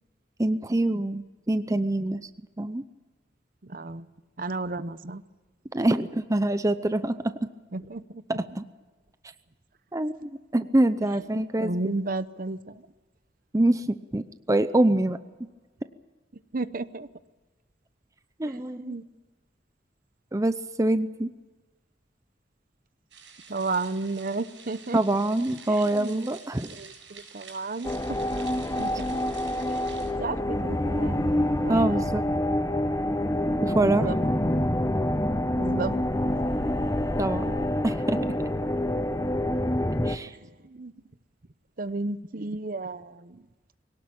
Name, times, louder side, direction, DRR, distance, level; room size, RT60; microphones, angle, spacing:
voice 1, 0.4-2.3 2.6-2.8 5.7-7.3 8.4-8.6 9.9-12.0 13.5-15.2 18.4-18.9 20.3-21.3 24.9-26.7 31.7-32.2 33.6-34.1 37.2-37.4 37.8-38.3 40.0-40.3, right 1 dB, 20° right, 11 dB, 0.6 m, -25 dB
voice 2, 3.6-4.1 4.4-5.2 7.7-8.2 11.3-12.9 16.5-17.1 18.5-19.0 23.5-25.0 25.7-26.3 26.7-28.2 28.8-29.1 29.7-32.2 33.8-34.2 34.8-34.9 35.4-36.0 37.2-37.5 40.2-40.9 41.8-43.4, right 3 dB, 50° right, 14 dB, 0.8 m, -33 dB
sound 1, 23.1-30.1, right 6 dB, 90° right, 7.3 m, -48 dB
sound 2, 27.8-40.2, left 1 dB, 20° left, 0.8 m, -27 dB
22.0 x 18.5 x 8.8 m, 1.3 s
head